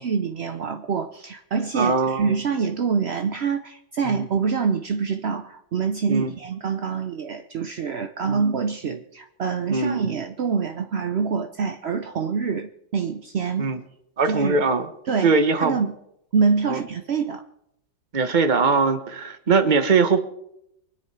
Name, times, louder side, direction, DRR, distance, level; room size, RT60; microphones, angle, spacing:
voice 1, 0.0-13.7 14.3-14.6 15.1-16.0 16.3-17.4, right 5 dB, 60° right, 6 dB, 0.6 m, -25 dB
voice 2, 1.7-2.3 4.1-4.3 6.1-6.3 8.3-8.4 8.9-9.0 9.7-10.0 13.6-13.8 14.2-14.9 15.2-15.8 16.7-16.8 18.1-20.2, right 4 dB, 30° right, 10 dB, 0.9 m, -21 dB
24.0 x 9.8 x 4.8 m, 0.79 s
omnidirectional pair, 2.0 m